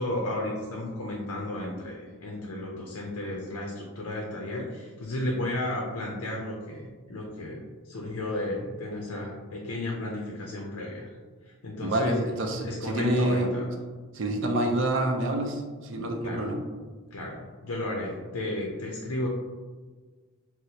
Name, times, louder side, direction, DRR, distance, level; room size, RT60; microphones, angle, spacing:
voice 1, 0.0-11.2 11.4-12.2 12.6-13.8 16.2-16.6 17.1-19.3, left 1 dB, 80° left, -1 dB, 0.5 m, -33 dB
voice 2, 11.8-13.5 14.1-16.6, right 1 dB, 55° right, 2 dB, 0.4 m, -27 dB
4.0 x 2.0 x 2.8 m, 1.4 s
head